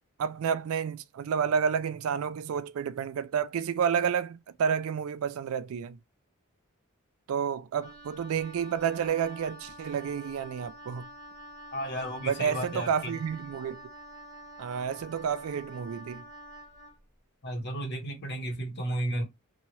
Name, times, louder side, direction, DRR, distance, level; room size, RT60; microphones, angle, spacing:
voice 1, 0.2-6.0 7.3-11.1 12.2-13.8 14.6-16.2, right 7 dB, 70° right, 0.3 m, -30 dB
Wind instrument woodwind instrument, 7.8-17.0, equal, 15° right, 1.1 m, -47 dB
voice 2, 11.7-13.1 17.4-19.3, right 1 dB, 50° left, 1.0 m, -33 dB
2.8 x 2.3 x 2.9 m
head